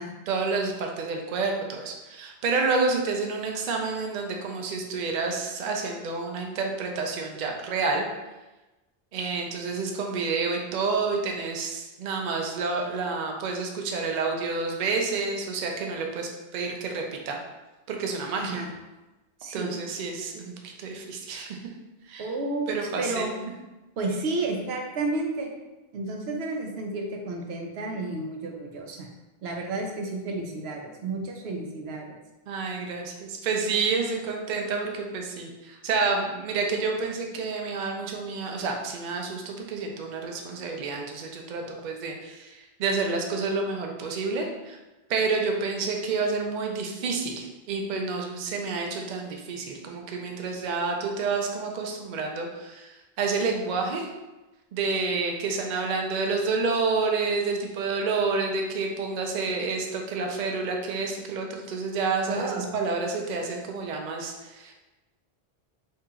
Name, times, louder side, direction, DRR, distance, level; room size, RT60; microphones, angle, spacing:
voice 1, 0.3-8.0 9.1-17.4 17.9-18.6 19.5-21.6 22.1-22.3 22.7-23.3 32.5-44.8 45.1-54.1 54.7-64.7, right 4 dB, 55° right, 2 dB, 0.6 m, -29 dB
voice 2, 18.4-18.7 19.4-19.8 22.2-23.3 24.0-25.5 25.9-29.1 29.4-32.2 34.0-34.2 62.3-62.7, right 2 dB, 90° right, 2 dB, 0.9 m, -31 dB
2.8 x 2.8 x 3.5 m, 1.1 s
omnidirectional pair, 1.0 m